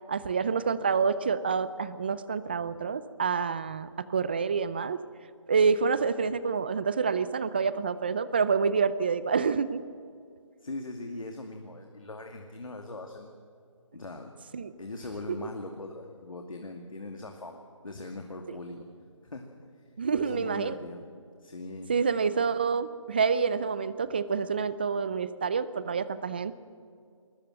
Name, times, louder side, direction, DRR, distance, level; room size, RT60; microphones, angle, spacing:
voice 1, 0.1-5.0 5.5-9.8 14.5-14.7 15.3-15.4 18.5-18.6 20.0-20.8 21.9-26.5, right 5 dB, 20° right, 15 dB, 0.4 m, -27 dB
voice 2, 10.6-13.3 13.9-14.3 14.8-18.9 19.2-19.5 20.1-21.0 21.4-21.9, left 2 dB, 85° left, 3 dB, 2.4 m, -40 dB
21.0 x 19.5 x 7.7 m, 2.3 s
figure-of-eight pair, 165°, 17 cm